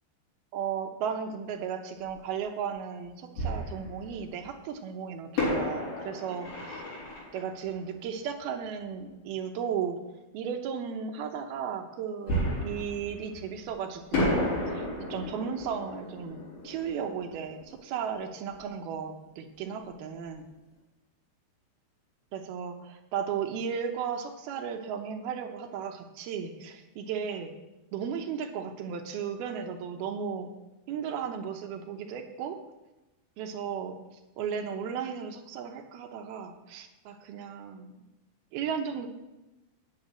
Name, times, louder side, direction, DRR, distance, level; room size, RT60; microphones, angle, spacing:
voice 1, 0.5-6.8 7.3-10.0 10.3-20.4 22.3-27.6 27.9-30.5 30.9-32.6 33.4-34.0 34.4-38.0 38.5-39.1, right 7 dB, 75° right, 5 dB, 2.6 m, -35 dB
Fireworks, 2.1-2.2 3.4-4.5 5.4-8.8 12.3-13.7 14.1-18.7 18.9-19.0 19.5-19.8, left 1 dB, 60° left, 5.6 m, -33 dB
9.0 x 7.2 x 8.8 m, 1.0 s
omnidirectional pair, 4.8 m